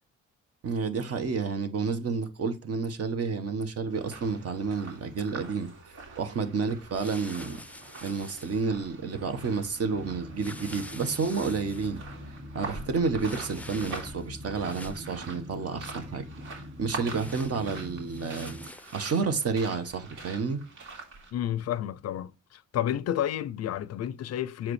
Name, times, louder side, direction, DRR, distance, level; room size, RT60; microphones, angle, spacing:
voice 1, 0.6-7.6 8.0-12.0 12.5-16.2 16.8-20.6, right 5 dB, 50° right, 1.3 m, -30 dB
sound 1, 3.9-21.3, right 3 dB, 80° right, 3.2 m, -45 dB
sound 2, 6.9-8.6 10.4-11.9 13.2-14.3 14.6-15.2 17.0-19.2, left 2 dB, 5° left, 0.5 m, -47 dB
sound 3, 7.7-18.7, equal, 20° right, 1.2 m, -44 dB
voice 2, 21.3-24.7, left 11 dB, 55° left, 0.5 m, -31 dB
7.2 x 4.9 x 3.1 m
cardioid pair, 90°, 30 cm